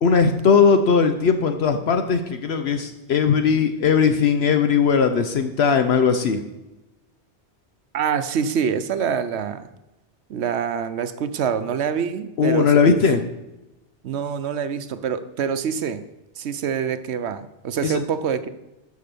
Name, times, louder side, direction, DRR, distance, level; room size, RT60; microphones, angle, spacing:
voice 1, 0.0-6.4 12.4-13.2 17.8-18.0, left 5 dB, 70° left, 7 dB, 1.0 m, -18 dB
voice 2, 7.9-9.7 10.3-12.7 14.0-16.0 16.4-18.5, right 7 dB, 75° right, 11 dB, 1.0 m, -25 dB
11.5 x 4.8 x 6.9 m, 0.99 s
omnidirectional pair, 1.1 m